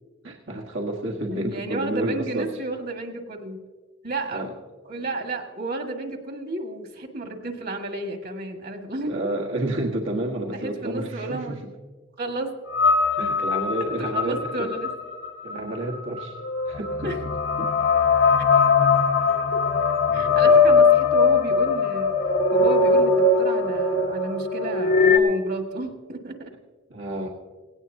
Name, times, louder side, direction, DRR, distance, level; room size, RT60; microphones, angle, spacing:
voice 1, 0.2-2.5 4.3-4.5 9.1-11.6 13.2-14.7 15.4-16.4 16.7-17.2 17.6-17.8 18.5-18.6 20.1-20.9 26.9-27.3, right 1 dB, 75° right, 0 dB, 1.4 m, -30 dB
voice 2, 1.3-3.6 4.0-4.5 4.9-9.1 10.5-11.6 12.2-12.5 13.8-14.9 17.0-17.2 19.3-19.6 20.1-22.1 22.5-26.5, right 2 dB, 55° right, 4 dB, 1.7 m, -32 dB
sound 1, 12.7-25.2, left 4 dB, 65° left, 1.2 m, -20 dB
18.5 x 17.0 x 2.7 m, 1.4 s
head